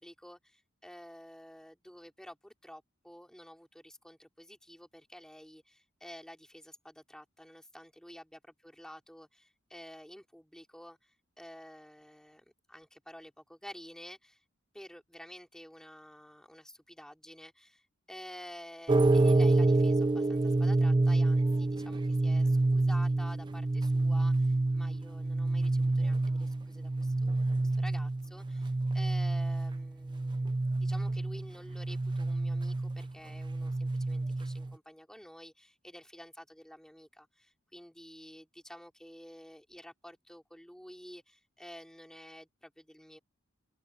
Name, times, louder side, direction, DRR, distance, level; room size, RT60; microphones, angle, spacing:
voice 1, 0.0-14.4 14.7-30.5 30.8-43.2, equal, 5° left, 3.8 m, -51 dB
sound 1, 18.9-34.7, right 2 dB, 20° right, 0.4 m, -28 dB
open air
head